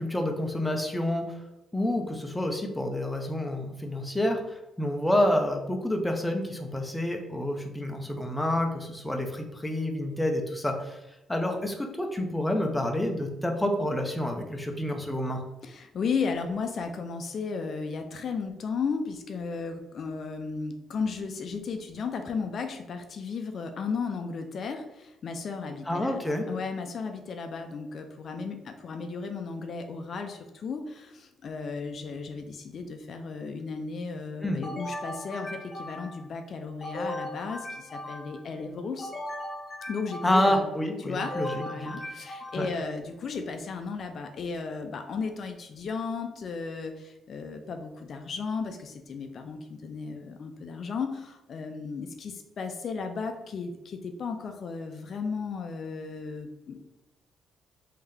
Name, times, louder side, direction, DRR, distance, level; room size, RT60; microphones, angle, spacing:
voice 1, 0.0-1.4 1.7-11.0 11.3-15.4 25.9-26.5 34.4-34.6 40.2-41.9 42.6-42.7, left 1 dB, 10° left, 3 dB, 0.6 m, -28 dB
voice 2, 15.6-26.2 26.5-39.1 39.9-40.7 41.0-41.3 41.7-56.8, left 5 dB, 55° left, 5 dB, 0.4 m, -35 dB
sound 1, 34.6-36.3 36.8-38.5 39.0-40.6 41.2-42.9, left 1 dB, 35° left, 1.0 m, -38 dB
3.5 x 2.7 x 3.4 m, 0.97 s
cardioid pair, 90°, 0 cm